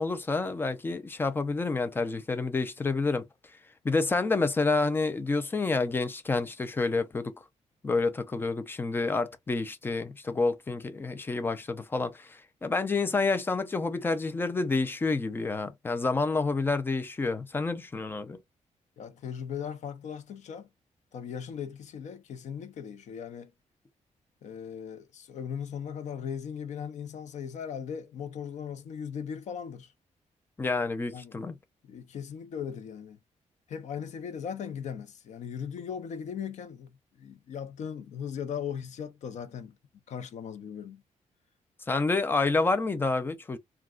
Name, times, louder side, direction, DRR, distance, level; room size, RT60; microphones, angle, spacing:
voice 1, 0.0-3.2 3.8-7.3 7.8-18.4 30.6-31.5 41.9-43.6, left 3 dB, 15° left, 0.4 m, -28 dB
voice 2, 19.0-20.7 21.1-23.5 24.4-29.9 31.1-31.4 31.9-33.2 33.7-39.7 40.1-41.0, left 7 dB, 65° left, 0.7 m, -38 dB
3.6 x 2.3 x 2.3 m
wide cardioid pair, 170°, 13 cm